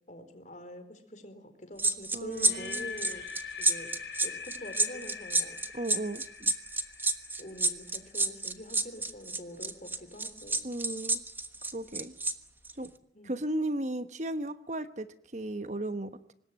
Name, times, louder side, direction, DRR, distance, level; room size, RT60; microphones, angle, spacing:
voice 1, 0.1-3.2 3.6-3.9 4.2-5.6 7.4-10.6 13.1-13.4, equal, 40° left, 8 dB, 4.4 m, -45 dB
sound 1, 1.8-12.3 12.6-12.9, right 2 dB, 10° right, 1.3 m, -29 dB
voice 2, 2.1-2.9 5.7-6.5 10.6-11.2 11.7-12.1 12.7-12.9 13.2-15.1 15.3-16.1, right 1 dB, 40° right, 12 dB, 1.1 m, -35 dB
sound 2, 2.3-8.3, left 6 dB, 75° left, 3.9 m, -43 dB
25.5 x 20.5 x 9.3 m, 0.79 s
head